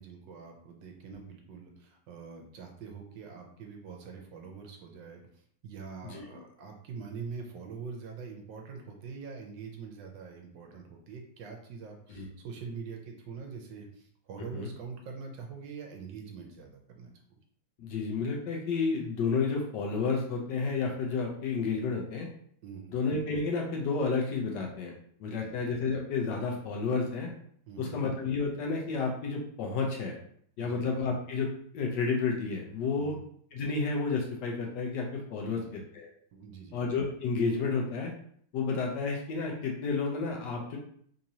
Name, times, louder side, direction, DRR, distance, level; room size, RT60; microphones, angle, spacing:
voice 1, 0.0-5.2 5.6-17.4 22.6-22.9 25.2-25.6 27.7-28.0 30.6-30.9 33.0-33.2 35.4-35.8 36.3-36.8, right 5 dB, 75° right, 2 dB, 1.2 m, -44 dB
voice 2, 17.8-22.3 22.9-24.9 25.2-27.3 27.8-30.2 30.6-31.5 31.7-33.1 33.5-36.1 36.7-38.1 38.5-40.8, left 4 dB, 70° left, 0 dB, 1.1 m, -31 dB
3.7 x 2.9 x 2.7 m, 0.62 s
omnidirectional pair, 2.2 m